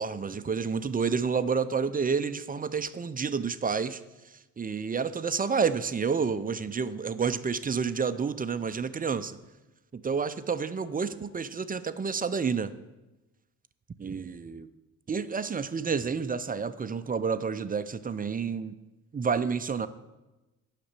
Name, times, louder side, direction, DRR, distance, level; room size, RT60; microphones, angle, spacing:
voice 1, 0.0-4.0 4.6-9.4 9.9-12.7 14.0-14.7 15.1-18.8 19.1-19.9, right 5 dB, 20° right, 13 dB, 0.5 m, -29 dB
8.6 x 6.0 x 6.6 m, 1.1 s
hypercardioid pair, 50°, 47 cm